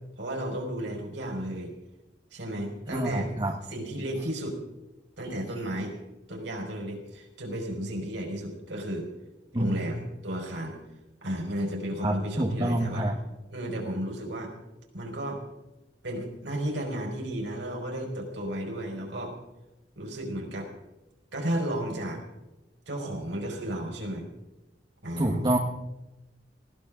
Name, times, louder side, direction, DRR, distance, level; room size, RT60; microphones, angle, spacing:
voice 1, 0.2-1.7 2.3-3.3 3.7-4.6 5.2-6.0 6.3-9.1 9.5-10.8 11.2-13.1 13.5-14.5 14.9-15.4 16.0-19.4 20.0-20.7 21.3-22.2 22.9-24.3 25.0-25.5, right 1 dB, 70° right, 0 dB, 5.0 m, -33 dB
voice 2, 2.9-3.6 9.5-9.8 12.0-13.2 25.2-25.6, right 1 dB, 25° right, 2 dB, 1.4 m, -27 dB
19.5 x 16.5 x 3.8 m, 0.98 s
head